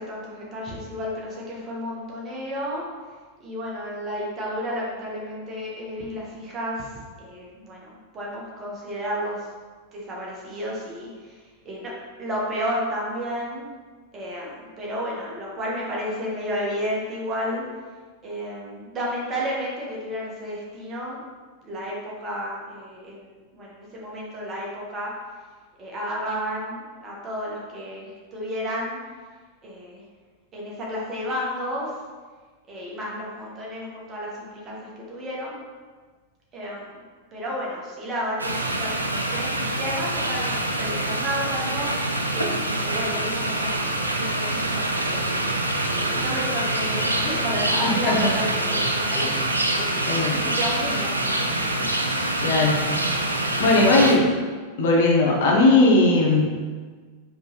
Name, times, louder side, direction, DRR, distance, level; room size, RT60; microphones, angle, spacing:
voice 1, 0.0-2.9 3.4-9.5 9.9-11.9 12.2-13.7 14.1-17.6 18.2-21.2 21.6-25.1 25.8-29.0 29.6-30.0 30.5-31.9 32.7-35.6 36.5-36.9 37.3-42.5 42.8-43.8 44.1-45.5 46.0-52.5, equal, 25° right, -4 dB, 1.1 m, -32 dB
sound 1, 38.4-54.1, right 1 dB, 80° right, 0.3 m, -25 dB
voice 2, 47.8-48.3 50.1-50.4 52.4-53.1 53.6-54.3 54.8-56.6, left 2 dB, 55° left, -2 dB, 0.9 m, -18 dB
4.9 x 3.1 x 2.9 m, 1.5 s
figure-of-eight pair, 90°, 0 cm